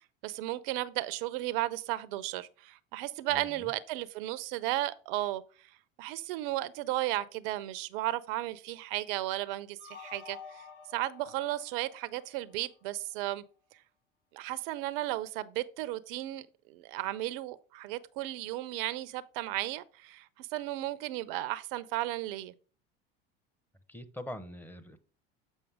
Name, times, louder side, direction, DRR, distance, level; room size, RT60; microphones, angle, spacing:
voice 1, 0.2-5.7 6.0-10.7 10.9-13.4 14.3-22.5, right 15 dB, 70° right, 0.6 m, -34 dB
voice 2, 3.3-3.7 23.9-25.0, left 1 dB, 5° left, 0.9 m, -43 dB
sound 1, 9.8-12.9, left 6 dB, 90° left, 1.3 m, -50 dB
7.2 x 5.6 x 3.5 m
hypercardioid pair, 85°, 29 cm